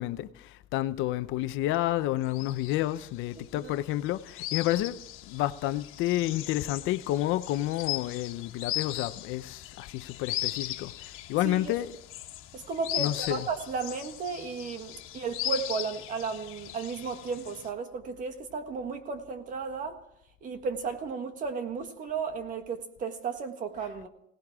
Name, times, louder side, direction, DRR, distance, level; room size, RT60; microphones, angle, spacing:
voice 1, 0.0-5.0 5.3-11.9 13.0-13.5, left 15 dB, 70° left, 0.8 m, -30 dB
sound 1, 2.3-17.7, left 15 dB, 90° left, 1.5 m, -38 dB
voice 2, 3.4-3.7 11.4-11.7 12.5-20.0 20.4-24.1, right 5 dB, 40° right, 1.7 m, -34 dB
21.5 x 17.5 x 3.6 m
cardioid pair, 175°, 21 cm